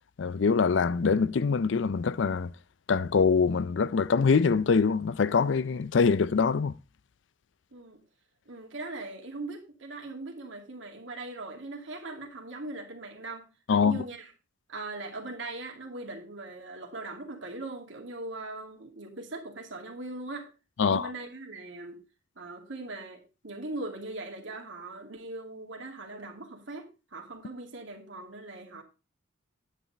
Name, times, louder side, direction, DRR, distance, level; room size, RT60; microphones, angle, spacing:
voice 1, 0.2-2.5 2.9-6.7 13.7-14.0 20.8-21.1, left 5 dB, 65° left, 0.4 m, -24 dB
voice 2, 8.5-13.5 13.7-14.3 14.7-20.5 20.8-22.0 22.4-28.8, right 2 dB, 70° right, 2.4 m, -40 dB
10.0 x 8.8 x 4.0 m
head